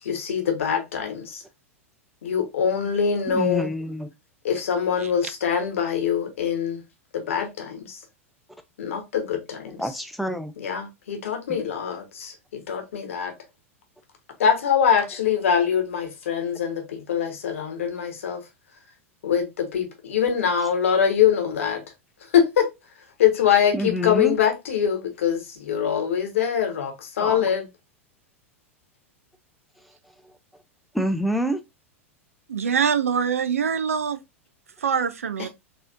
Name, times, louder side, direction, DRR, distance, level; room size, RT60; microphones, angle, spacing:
voice 1, 0.0-1.4 2.2-3.7 4.4-6.8 7.1-8.0 8.8-9.8 10.6-13.3 14.4-18.4 19.2-21.8 22.3-22.7 23.2-27.7, left 8 dB, 65° left, 1.1 m, -23 dB
voice 2, 3.3-4.1 9.8-10.5 11.5-11.6 23.7-24.4 27.2-27.5 30.9-31.6, equal, ahead, 0.4 m, -26 dB
voice 3, 32.5-34.2 34.8-35.5, right 7 dB, 75° right, 0.4 m, -24 dB
4.0 x 2.8 x 2.4 m
figure-of-eight pair, 95°, 8 cm